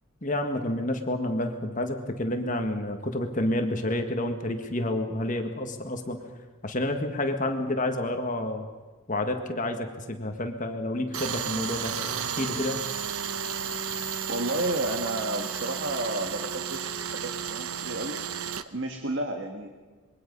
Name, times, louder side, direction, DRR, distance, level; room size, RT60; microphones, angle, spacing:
voice 1, 0.2-6.2 6.6-8.7 9.1-12.8, left 1 dB, 35° left, 5 dB, 1.7 m, -29 dB
Tools, 11.1-18.6, right 7 dB, 75° right, 1.0 m, -33 dB
voice 2, 14.3-18.2 18.7-19.7, right 1 dB, 55° right, 4 dB, 1.7 m, -31 dB
25.5 x 22.5 x 5.4 m, 1.3 s
head